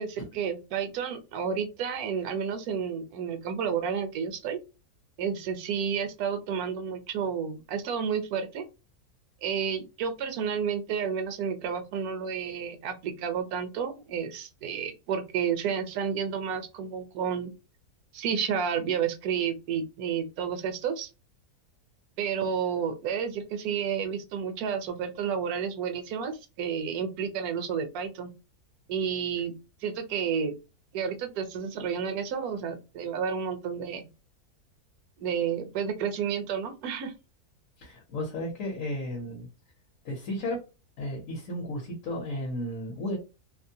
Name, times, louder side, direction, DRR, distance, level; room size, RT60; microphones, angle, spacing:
voice 1, 0.0-4.6 5.2-8.6 9.4-17.5 18.1-21.1 22.2-26.3 26.6-28.3 28.9-29.5 29.8-30.5 30.9-34.1 35.2-37.1, right 7 dB, 75° right, 8 dB, 1.1 m, -31 dB
voice 2, 37.8-39.5 40.0-40.6 41.0-43.2, left 1 dB, 60° left, -1 dB, 1.1 m, -33 dB
2.9 x 2.1 x 2.6 m, 0.29 s
omnidirectional pair, 1.7 m